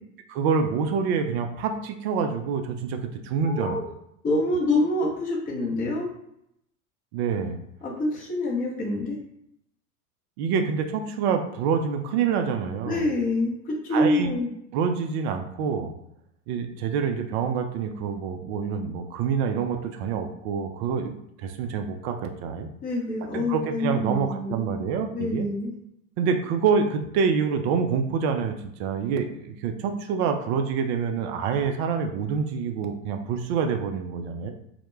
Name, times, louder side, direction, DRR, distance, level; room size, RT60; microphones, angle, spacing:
voice 1, 0.3-3.0 3.2-3.8 7.1-7.6 10.4-13.1 13.9-14.3 14.7-15.9 16.5-21.1 21.4-22.7 23.3-25.5 26.2-34.5, right 6 dB, 45° right, 6 dB, 0.4 m, -26 dB
voice 2, 3.4-3.8 4.2-6.1 7.8-9.2 12.9-14.5 22.8-24.6 25.1-25.7, left 2 dB, 20° left, -3 dB, 0.6 m, -26 dB
2.1 x 2.1 x 3.1 m, 0.77 s
hypercardioid pair, 95°, 46 cm